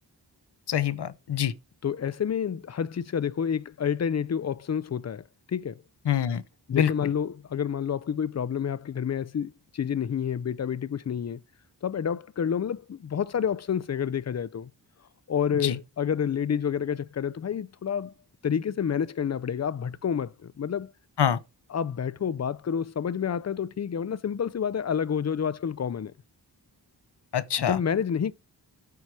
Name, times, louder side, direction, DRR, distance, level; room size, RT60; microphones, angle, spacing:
voice 1, 0.7-1.5 6.1-6.4 6.7-6.9 15.6-15.8 21.2-21.4 27.3-27.8, left 9 dB, 70° left, 0.8 m, -25 dB
voice 2, 1.8-5.2 5.5-5.8 6.7-11.4 11.8-14.7 15.3-18.1 18.4-20.9 21.7-26.1 27.6-28.3, left 8 dB, 40° left, 0.5 m, -29 dB
8.4 x 4.6 x 4.8 m
cardioid pair, 50°, 42 cm